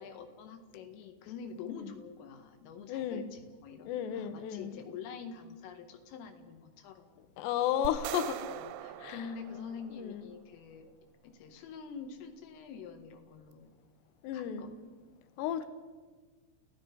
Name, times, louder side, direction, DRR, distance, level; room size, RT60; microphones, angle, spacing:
voice 1, 0.0-7.3 8.4-10.9 11.2-13.7 14.3-14.9, left 6 dB, 90° left, 5 dB, 4.4 m, -46 dB
voice 2, 2.9-3.3 3.9-4.8 7.4-8.4 9.0-9.2 10.0-10.2 14.2-14.7 15.4-15.6, left 10 dB, 75° left, 11 dB, 2.9 m, -33 dB
sound 1, 7.9-10.2, right 12 dB, 80° right, 2.6 m, -42 dB
28.5 x 16.5 x 5.5 m, 1.4 s
omnidirectional pair, 5.7 m